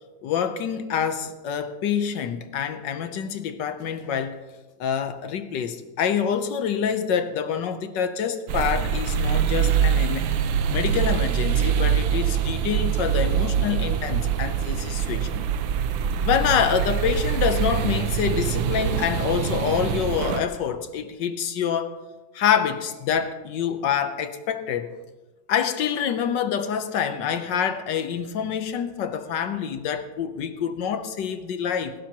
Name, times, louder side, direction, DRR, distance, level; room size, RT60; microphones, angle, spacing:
voice 1, 0.2-4.4 4.8-10.3 10.7-15.5 16.2-22.1 22.3-25.0 25.5-31.9, left 8 dB, 70° left, 1.4 m, -26 dB
sound 1, 8.5-20.4, right 8 dB, 80° right, 1.5 m, -24 dB
17.5 x 15.5 x 3.0 m
omnidirectional pair, 2.1 m